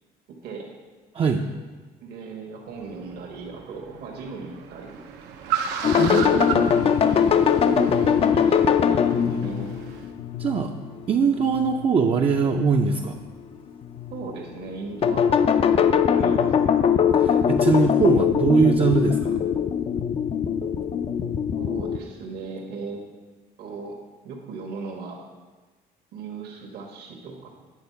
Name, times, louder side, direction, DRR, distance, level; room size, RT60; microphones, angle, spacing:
voice 1, 0.3-0.7 2.0-5.0 6.5-6.6 6.8-9.7 14.1-16.9 21.6-23.0 23.6-25.3 26.1-27.5, right 4 dB, 70° right, 0 dB, 1.2 m, -37 dB
Car, 2.7-10.1, right 8 dB, 90° right, 0.7 m, -34 dB
sound 1, 5.8-12.0 12.6-13.2 13.8-14.4 15.0-22.0, left 7 dB, 35° left, 0.4 m, -22 dB
voice 2, 6.0-6.9 10.4-10.7 11.1-13.2 17.1-19.4, right 5 dB, 35° right, 2 dB, 0.4 m, -22 dB
8.8 x 3.8 x 5.6 m, 1.3 s
cardioid pair, 110°, 17 cm